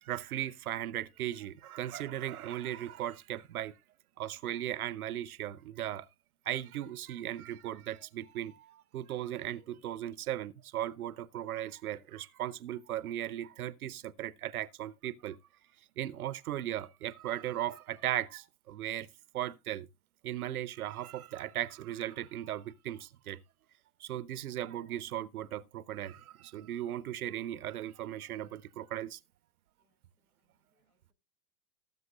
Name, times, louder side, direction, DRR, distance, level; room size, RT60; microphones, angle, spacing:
voice 1, 0.0-3.7 4.2-6.1 6.5-15.4 16.0-19.1 19.3-19.9 20.2-23.4 24.0-29.2, right 12 dB, 65° right, 0.8 m, -37 dB
voice 2, 29.8-31.1, left 3 dB, 75° left, 4.6 m, -82 dB
18.5 x 7.6 x 2.4 m
figure-of-eight pair, 95°, 47 cm